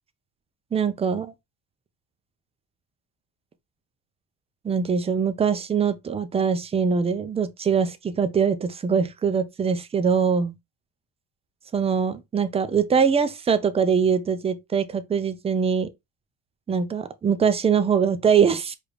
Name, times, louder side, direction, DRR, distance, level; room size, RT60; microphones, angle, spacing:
voice 1, 0.7-1.3 4.6-10.5 11.7-15.9 16.7-18.7, right 6 dB, 15° right, 0.3 m, -23 dB
4.8 x 2.5 x 3.2 m
cardioid pair, 120°, 46 cm